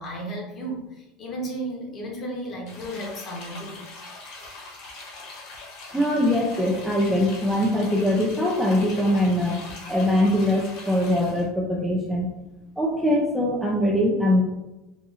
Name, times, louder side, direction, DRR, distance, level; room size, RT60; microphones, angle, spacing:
voice 1, 0.0-3.8 4.4-4.5, right 1 dB, 35° left, -1 dB, 1.0 m, -34 dB
sound 1, 2.7-11.5, left 3 dB, 60° left, 0.9 m, -42 dB
voice 2, 5.9-9.6 9.9-12.3 12.8-14.4, left 1 dB, 5° right, -3 dB, 0.4 m, -22 dB
4.1 x 2.5 x 2.5 m, 0.98 s
supercardioid pair, 140°, 0 cm